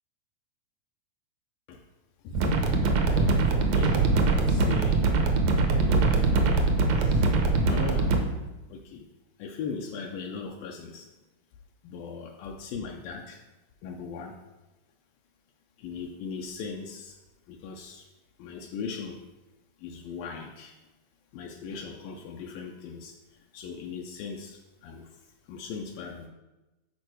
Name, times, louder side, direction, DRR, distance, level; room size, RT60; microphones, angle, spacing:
sound 1, 2.3-8.2, right 3 dB, 75° right, 1.6 m, -23 dB
voice 1, 3.1-5.1 5.6-7.4 7.7-8.4 8.7-9.1 9.4-11.1 11.8-13.4 13.8-14.4 15.8-17.2 17.5-18.1 18.4-19.2 19.8-20.7 21.3-25.2 25.5-26.3, left 5 dB, 80° left, 1 dB, 2.3 m, -39 dB
11.5 x 4.5 x 4.5 m, 1.1 s
omnidirectional pair, 4.3 m